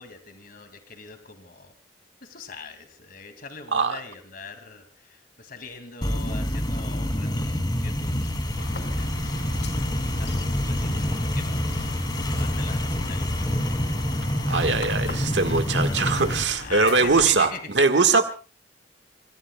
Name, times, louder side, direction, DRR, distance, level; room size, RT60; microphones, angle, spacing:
voice 1, 0.0-1.7 2.2-13.6 14.5-15.1 15.8-17.6 18.0-18.2, left 5 dB, 55° left, 2.2 m, -42 dB
sound 1, 6.0-16.4, left 1 dB, 25° left, 2.5 m, -27 dB
sound 2, 8.6-17.3, left 2 dB, 75° left, 2.9 m, -39 dB
voice 2, 14.5-17.5 17.7-18.2, right 4 dB, 85° right, 1.5 m, -21 dB
27.0 x 23.5 x 2.2 m
head